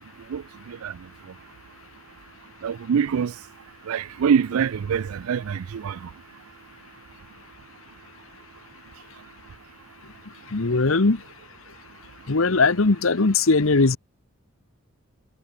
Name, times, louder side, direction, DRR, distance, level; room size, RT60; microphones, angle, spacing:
voice 1, 0.3-1.0 2.6-3.3 3.9-6.1, right 7 dB, 85° right, 0.4 m, -25 dB
voice 2, 10.5-11.2 12.3-14.0, left 3 dB, 70° left, 1.1 m, -19 dB
head